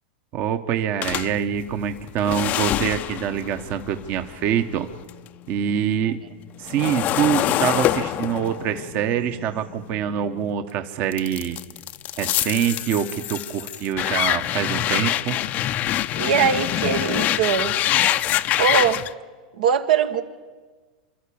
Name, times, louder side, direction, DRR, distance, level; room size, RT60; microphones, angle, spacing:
voice 1, 0.3-4.9 5.5-6.2 6.6-11.6 12.2-15.4, right 9 dB, 45° right, 8 dB, 1.2 m, -25 dB
sound 1, 1.0-5.3 5.6-10.5 11.1-19.1, left 13 dB, 40° left, 0.7 m, -25 dB
voice 2, 16.2-17.8 18.6-19.0 19.5-20.2, right 7 dB, 75° right, 7 dB, 1.5 m, -21 dB
27.0 x 12.5 x 8.7 m, 1.4 s
hypercardioid pair, 120°, 4 cm